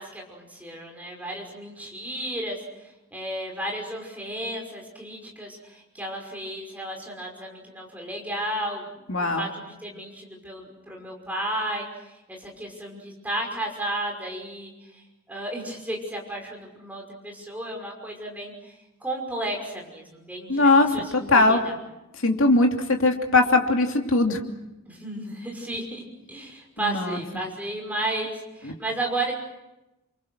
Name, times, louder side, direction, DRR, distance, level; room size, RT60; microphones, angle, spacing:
voice 1, 0.0-8.9 9.2-18.8 19.0-21.7 24.9-26.0 26.3-29.3, right 1 dB, 5° right, 0 dB, 5.7 m, -33 dB
voice 2, 9.1-9.5 20.5-21.6 22.2-24.4 26.8-27.2 28.7-28.8, left 2 dB, 65° left, 3 dB, 2.8 m, -20 dB
29.0 x 23.5 x 6.4 m, 0.95 s
head